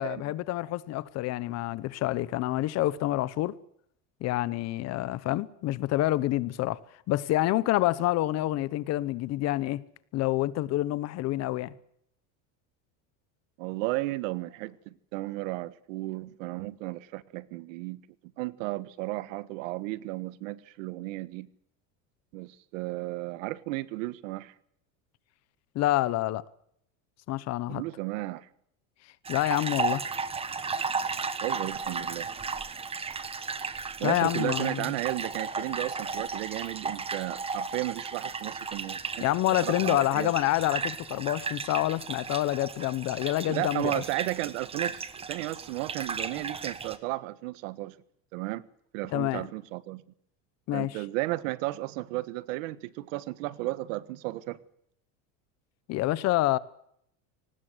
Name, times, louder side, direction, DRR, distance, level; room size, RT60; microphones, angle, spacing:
voice 1, 0.0-3.5 4.2-6.8 7.1-9.8 10.1-11.7 25.7-26.4 27.3-27.8 29.3-30.0 34.0-34.9 39.2-44.0 49.1-49.5 50.7-51.0 55.9-56.6, left 16 dB, 45° left, 1.0 m, -27 dB
voice 2, 13.6-18.0 18.4-21.5 22.3-24.5 27.7-28.5 31.4-32.3 34.0-39.2 39.5-40.3 43.5-45.0 45.3-48.0 48.3-48.6 48.9-50.0 50.7-54.6, right 19 dB, 80° right, 1.4 m, -34 dB
sound 1, 29.2-47.0, right 5 dB, 15° right, 1.3 m, -34 dB
24.0 x 19.5 x 8.0 m
cardioid pair, 155°, 38 cm